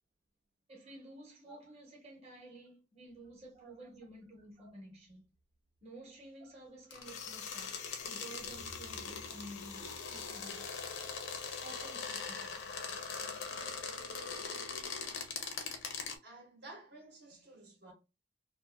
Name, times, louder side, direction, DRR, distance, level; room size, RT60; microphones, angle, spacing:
voice 1, 0.7-5.3 5.8-10.7 11.6-12.7, right 1 dB, 35° right, 0.8 m, -52 dB
sound 1, 3.1-5.8 6.8-6.9 8.3-15.5, equal, 80° right, 0.4 m, -61 dB
sound 2, 6.9-16.2, left 5 dB, 90° left, 0.6 m, -41 dB
sound 3, 7.0-14.3, left 9 dB, 40° left, 0.3 m, -52 dB
voice 2, 16.2-17.9, right 2 dB, 60° right, 0.9 m, -54 dB
2.5 x 2.4 x 2.4 m
head